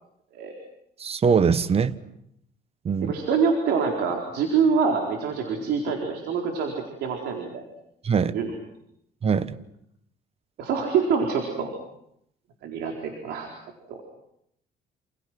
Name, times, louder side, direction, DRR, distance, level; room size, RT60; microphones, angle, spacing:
voice 1, 1.0-2.0 2.8-3.1 8.0-8.3 9.2-9.6, right 6 dB, 35° right, 1.3 m, -22 dB
voice 2, 3.0-6.7 7.0-7.6 8.3-8.5 10.6-11.7 12.6-13.5 13.9-14.0, right 5 dB, 80° right, 4.5 m, -25 dB
29.0 x 29.0 x 6.1 m
cardioid pair, 110°, 17 cm